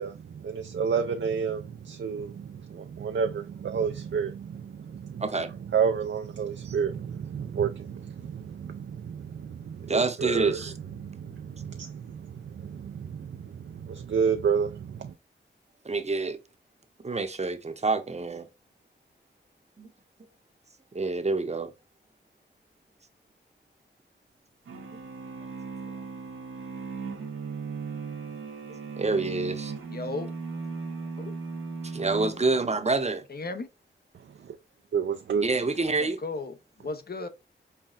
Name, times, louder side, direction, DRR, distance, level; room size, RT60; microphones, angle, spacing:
voice 1, 0.0-5.3 5.7-10.6 10.9-15.1 34.4-34.6 34.9-35.4, right 6 dB, 70° right, 0.5 m, -30 dB
voice 2, 9.9-10.7 15.8-16.4 17.0-18.5 19.8-19.9 20.9-21.7 29.0-29.7 31.9-33.2 35.4-36.2, right 3 dB, 35° right, 0.8 m, -27 dB
sound 1, 24.7-33.0, right 5 dB, 85° right, 0.9 m, -37 dB
voice 3, 29.9-30.3 31.2-31.3 33.3-33.7 36.0-37.3, left 3 dB, 50° left, 0.8 m, -35 dB
5.7 x 2.2 x 2.3 m
cardioid pair, 50°, 20 cm